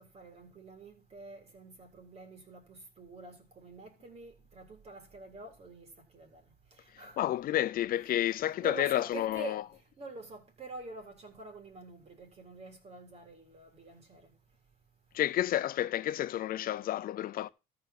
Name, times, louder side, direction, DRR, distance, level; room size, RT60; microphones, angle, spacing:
voice 1, 0.0-7.2 8.1-9.6 10.0-14.3, right 2 dB, 40° right, 3.8 m, -47 dB
voice 2, 7.2-9.6 15.1-17.5, left 13 dB, 60° left, 0.6 m, -30 dB
14.0 x 5.0 x 5.9 m
cardioid pair, 110°, 17 cm